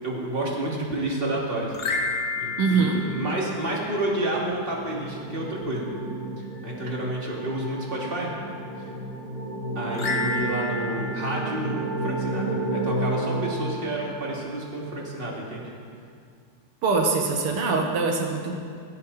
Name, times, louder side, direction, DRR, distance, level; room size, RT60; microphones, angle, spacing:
voice 1, 0.0-2.1 2.4-5.9 6.4-8.3 8.8-8.9 9.7-15.7, right 1 dB, 25° right, -3 dB, 2.9 m, -30 dB
sound 1, 1.7-4.2 9.9-12.5, left 3 dB, 35° left, 1.2 m, -31 dB
voice 2, 2.6-3.0 16.8-18.6, right 4 dB, 90° right, 2 dB, 2.4 m, -23 dB
sound 2, 4.0-14.5, right 2 dB, 60° left, 5.4 m, -32 dB
18.0 x 16.0 x 4.3 m, 2.2 s
omnidirectional pair, 2.4 m